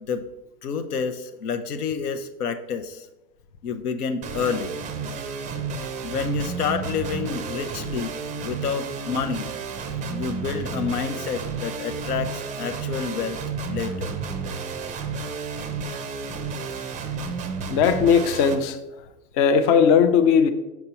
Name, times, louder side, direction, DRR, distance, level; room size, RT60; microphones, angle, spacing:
voice 1, 0.6-3.1 3.6-4.8 6.0-9.5 10.1-13.4 13.7-14.1, left 6 dB, 75° left, 0.8 m, -29 dB
sound 1, 4.2-18.5, right 5 dB, 15° right, 0.5 m, -31 dB
voice 2, 17.7-18.8 19.4-20.5, left 6 dB, 35° left, 0.5 m, -18 dB
6.4 x 5.9 x 2.9 m
hypercardioid pair, 105°, 46 cm